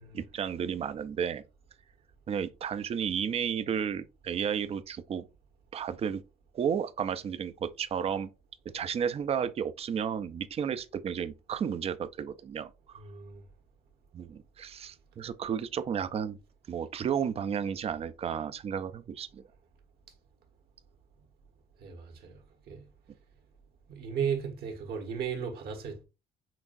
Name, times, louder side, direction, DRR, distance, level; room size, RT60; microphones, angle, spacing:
voice 1, 0.1-1.4 2.3-5.2 5.7-6.2 6.5-8.3 8.7-12.7 14.1-16.4 16.7-19.4, right 8 dB, 35° right, 0.5 m, -32 dB
voice 2, 13.0-13.4 21.8-22.4 22.7-22.8 23.9-26.0, right 7 dB, 65° right, 1.3 m, -35 dB
5.8 x 2.3 x 2.6 m
cardioid pair, 110°, 17 cm